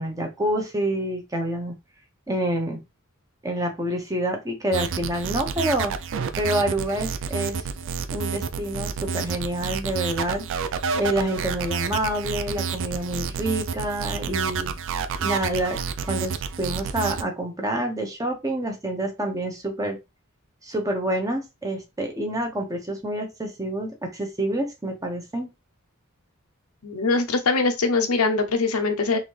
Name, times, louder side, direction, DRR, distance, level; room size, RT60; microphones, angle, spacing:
voice 1, 0.0-1.7 2.3-2.8 3.4-5.9 6.4-7.7 8.1-10.5 11.0-14.7 15.2-20.0 20.6-25.5, right 1 dB, 15° right, 0.9 m, -27 dB
sound 1, 4.7-17.2, right 6 dB, 65° right, 0.4 m, -29 dB
voice 2, 26.8-29.2, left 3 dB, 90° left, 0.8 m, -22 dB
3.9 x 2.7 x 3.2 m
head